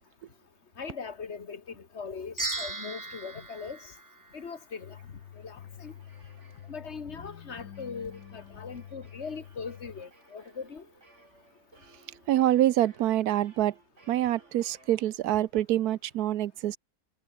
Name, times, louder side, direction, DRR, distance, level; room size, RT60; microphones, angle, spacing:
voice 1, 0.8-3.9 4.3-5.0 5.4-5.9 6.7-10.9, left 5 dB, 45° left, 2.0 m, -40 dB
sound 1, 2.4-4.8, right 2 dB, 15° right, 1.1 m, -37 dB
sound 2, 4.8-10.0, left 10 dB, 80° left, 1.5 m, -47 dB
sound 3, 5.1-15.6, right 2 dB, 50° right, 5.0 m, -60 dB
voice 2, 12.3-13.7 14.1-16.8, right 13 dB, 80° right, 1.2 m, -26 dB
omnidirectional pair, 1.6 m